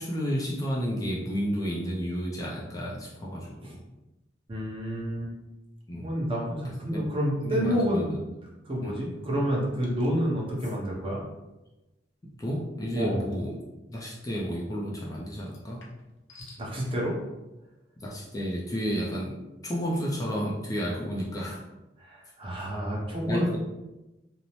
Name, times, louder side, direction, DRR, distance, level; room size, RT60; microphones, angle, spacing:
voice 1, 0.0-3.8 5.9-6.1 6.6-7.1 7.4-8.2 8.8-8.9 12.4-13.6 13.9-15.8 18.0-21.6 23.3-23.6, equal, 20° left, -4 dB, 0.3 m, -32 dB
voice 2, 4.5-5.3 6.0-8.2 8.6-11.3 12.9-13.2 16.6-17.2 22.0-23.6, equal, 30° right, -4 dB, 0.7 m, -29 dB
sound 1, 9.8-10.1 10.6-10.8 13.3-13.5 15.4-16.7, left 3 dB, 80° left, 0.6 m, -52 dB
2.6 x 2.0 x 3.0 m, 1.0 s
head